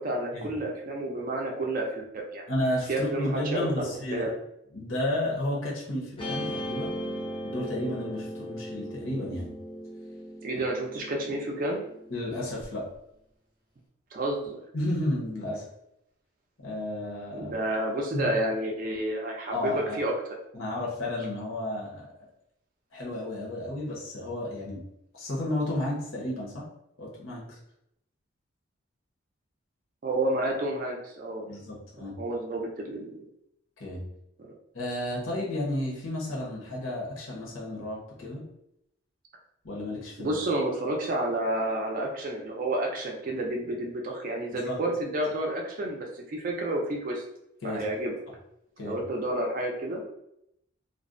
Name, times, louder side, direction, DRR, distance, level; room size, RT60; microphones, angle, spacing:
voice 1, 0.0-2.5 2.9-4.3 10.4-11.8 14.1-14.6 17.3-20.1 30.0-31.5 32.2-33.3 34.4-34.6 40.2-47.2 47.6-48.2 48.8-50.0, right 1 dB, 40° right, 1 dB, 0.4 m, -30 dB
voice 2, 2.5-4.3 4.7-7.0 7.4-9.5 12.1-12.9 14.7-15.7 16.6-17.5 18.1-18.3 19.5-20.0 20.5-22.1 22.9-24.8 25.1-26.6 27.0-27.6 31.5-32.2 33.8-34.0 34.7-38.4 39.6-40.4 44.5-44.8 47.6-47.8 48.8-49.0, left 1 dB, 75° left, -4 dB, 0.9 m, -32 dB
Guitar, 6.2-12.6, equal, 25° left, 0.5 m, -37 dB
2.5 x 2.0 x 2.5 m, 0.79 s
head